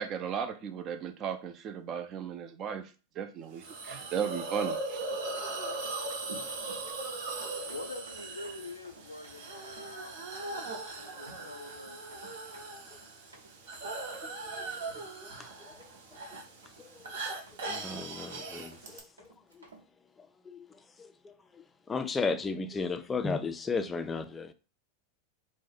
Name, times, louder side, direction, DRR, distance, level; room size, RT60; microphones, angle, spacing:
voice 1, 0.0-2.9 3.2-5.0, right 8 dB, 40° right, 0.5 m, -35 dB
Hiss, 3.6-19.0, right 2 dB, 65° right, 0.8 m, -39 dB
Run, 3.8-19.8, right 3 dB, 85° right, 0.9 m, -56 dB
voice 2, 7.6-12.4, left 3 dB, 90° left, 0.4 m, -46 dB
voice 3, 17.7-19.0 20.5-20.7 21.0-24.5, left 4 dB, 20° left, 0.4 m, -34 dB
2.6 x 2.1 x 4.0 m
hypercardioid pair, 95°, 0 cm